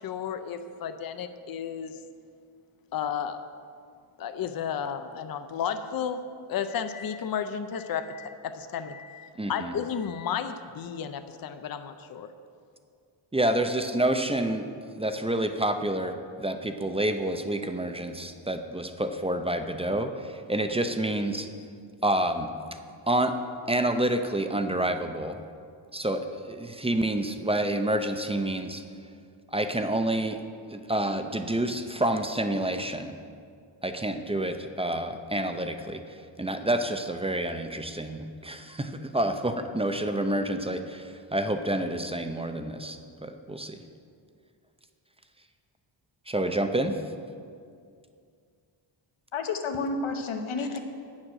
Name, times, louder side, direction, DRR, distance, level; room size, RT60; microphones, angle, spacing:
voice 1, 0.0-2.0 2.9-3.4 4.2-6.2 6.5-12.3, left 8 dB, 45° left, 9 dB, 0.6 m, -33 dB
voice 2, 9.4-9.7 13.3-14.7 15.0-21.5 22.0-22.5 23.1-23.4 23.7-25.4 25.9-28.8 29.5-30.4 30.7-33.1 33.8-43.8 46.3-47.0, right 1 dB, 10° right, 7 dB, 0.5 m, -28 dB
voice 3, 49.3-50.8, left 3 dB, 75° left, 4 dB, 1.2 m, -30 dB
8.7 x 7.4 x 6.3 m, 2.3 s
cardioid pair, 100°, 49 cm